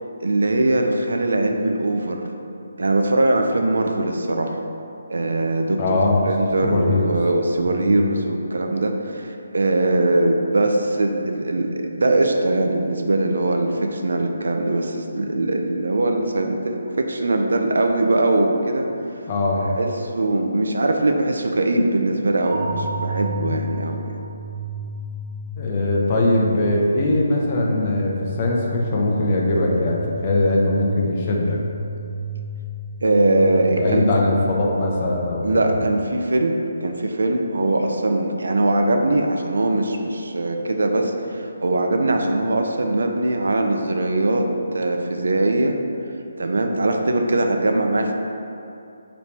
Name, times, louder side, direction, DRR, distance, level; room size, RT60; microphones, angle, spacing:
voice 1, 0.2-2.3 2.8-4.6 5.1-18.9 19.7-24.2 33.0-34.0 35.4-45.8 46.4-48.1, right 2 dB, 75° right, 4 dB, 0.3 m, -21 dB
voice 2, 5.8-6.2 6.6-7.1 7.7-8.0 19.3-19.8 25.6-31.6 33.7-35.8, left 2 dB, 35° left, -2 dB, 0.5 m, -21 dB
sound 1, 22.4-34.4, right 1 dB, 55° right, 0.7 m, -32 dB
3.0 x 2.7 x 3.2 m, 2.7 s
figure-of-eight pair, 150°, 0 cm